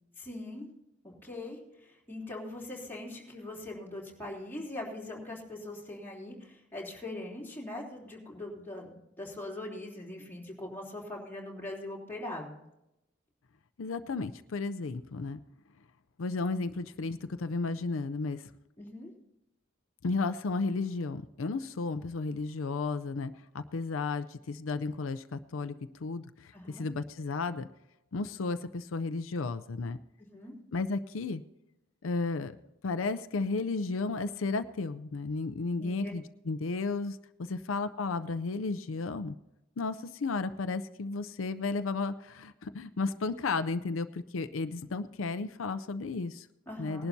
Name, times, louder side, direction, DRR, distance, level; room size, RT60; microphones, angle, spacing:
voice 1, 0.2-0.7 1.0-12.6 18.8-19.1 26.5-26.8 30.2-30.5 35.8-36.1 46.7-47.1, left 1 dB, 10° left, -3 dB, 3.3 m, -41 dB
voice 2, 13.8-15.4 16.2-18.5 20.0-25.7 26.0-27.7 28.1-30.0 30.7-31.4 32.0-32.6 32.8-39.3 39.8-46.5 46.8-47.1, left 3 dB, 85° left, 11 dB, 0.5 m, -33 dB
20.0 x 11.5 x 2.7 m, 0.89 s
head